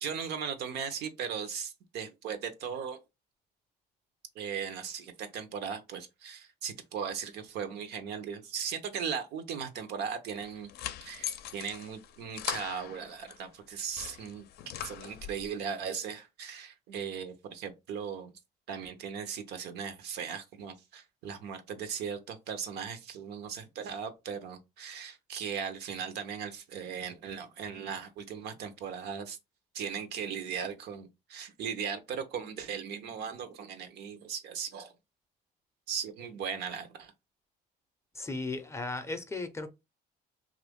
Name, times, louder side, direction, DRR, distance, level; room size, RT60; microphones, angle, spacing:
voice 1, 0.0-3.0 4.3-10.7 11.0-14.5 14.8-18.3 18.7-29.4 29.7-34.9 35.9-37.1, right 7 dB, 80° right, 0.8 m, -38 dB
sound 1, 10.3-13.4 13.8-15.5, left 11 dB, 70° left, 0.5 m, -41 dB
voice 2, 38.1-39.7, left 3 dB, 15° left, 0.5 m, -36 dB
3.0 x 2.5 x 3.5 m
cardioid pair, 110°, 17 cm